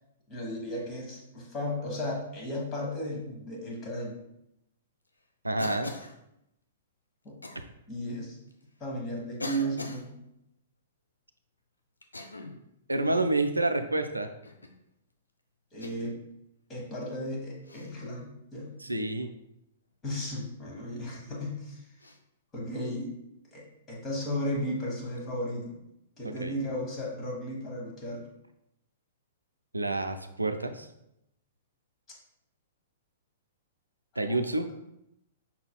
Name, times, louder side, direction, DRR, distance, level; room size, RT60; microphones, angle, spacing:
voice 1, 0.3-4.2 7.2-7.4 7.9-8.4 8.8-10.2 15.7-16.2 16.7-18.8 20.0-21.8 22.5-23.1 23.5-25.8 26.2-28.2 34.3-34.4, equal, 20° left, -3 dB, 1.4 m, -35 dB
voice 2, 5.4-5.9 7.6-7.7 12.9-14.3 18.8-19.3 26.2-26.5 29.7-30.9 34.2-34.7, right 2 dB, 80° right, 7 dB, 0.3 m, -28 dB
Cough, 5.6-6.2 7.4-7.6 8.5-8.6 9.4-10.0 12.0-12.6 13.0-13.3 14.4-14.8 15.8-16.2 17.6-17.9 20.1-20.3 22.0-22.2, left 2 dB, 80° left, 0.5 m, -41 dB
5.7 x 4.0 x 2.3 m, 0.83 s
figure-of-eight pair, 110°, 0 cm